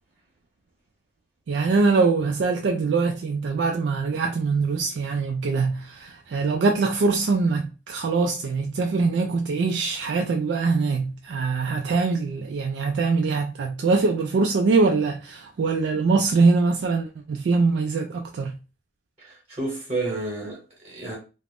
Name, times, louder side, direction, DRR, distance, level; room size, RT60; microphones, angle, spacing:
voice 1, 1.5-18.5, right 4 dB, 90° right, 0.3 m, -23 dB
voice 2, 19.2-21.2, right 2 dB, 40° right, 1.0 m, -31 dB
2.4 x 2.1 x 3.3 m
head